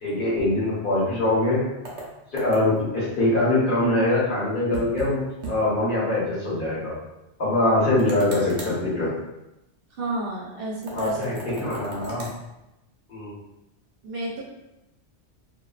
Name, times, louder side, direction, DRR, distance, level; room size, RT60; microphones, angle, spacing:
voice 1, 0.0-1.6 2.3-7.0 7.4-9.1 10.9-11.3 11.6-12.3 13.1-13.3, left 2 dB, 50° left, -7 dB, 1.1 m, -23 dB
sound 1, 1.8-2.9 4.7-5.1 5.4-5.6 5.9-6.0 8.0-8.8 10.8-12.4, right 2 dB, 85° right, 1.0 m, -36 dB
voice 2, 9.9-11.2 11.5-11.6 14.0-14.4, right 2 dB, 55° right, -5 dB, 0.9 m, -31 dB
2.5 x 2.2 x 2.3 m, 0.92 s
omnidirectional pair, 1.2 m